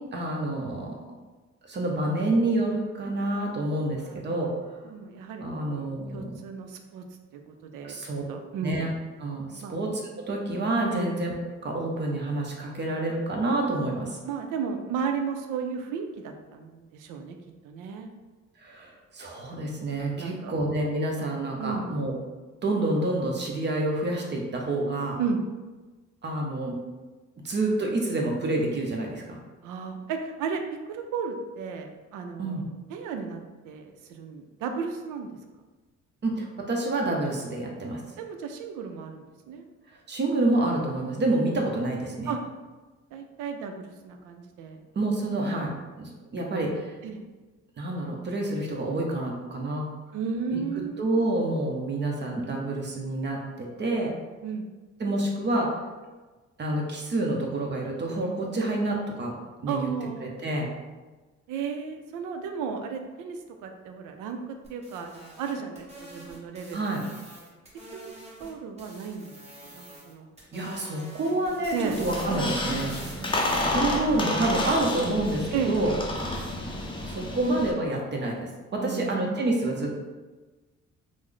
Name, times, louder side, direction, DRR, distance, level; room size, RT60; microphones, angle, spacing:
voice 1, 0.1-0.9 1.7-4.5 5.4-6.3 7.8-8.2 8.6-8.9 9.2-14.2 18.6-22.1 22.6-25.2 26.2-26.7 27.4-29.4 32.4-32.7 36.2-38.0 40.1-42.3 44.9-45.7 46.0-47.0 47.8-49.9 50.5-50.6 51.0-54.1 55.0-55.8 56.6-59.3 59.6-59.9 60.2-60.7 66.7-67.0 70.5-72.9 73.5-75.9 77.0-79.9, right 2 dB, 35° right, 0 dB, 0.7 m, -28 dB
voice 2, 4.8-7.0 7.3-8.0 8.3-8.8 9.6-9.8 10.9-11.2 14.2-17.4 17.6-18.1 20.2-20.5 21.6-21.9 25.2-25.4 29.6-32.6 32.9-33.4 33.6-35.4 38.2-39.6 42.3-42.4 43.1-44.8 47.0-47.2 50.1-51.1 54.4-54.7 59.7-60.3 61.5-67.0 67.9-69.3 69.6-70.3 71.7-72.0 73.2-73.8 75.5-76.0 78.7-79.4, right 6 dB, 90° right, 5 dB, 0.5 m, -34 dB
sound 1, 64.6-68.5 68.8-70.1 70.4-73.7, right 1 dB, 20° right, 1.2 m, -46 dB
Squeak, 71.9-77.7, left 1 dB, 15° left, 0.5 m, -30 dB
3.1 x 2.0 x 3.7 m, 1.3 s
cardioid pair, 90°, 30 cm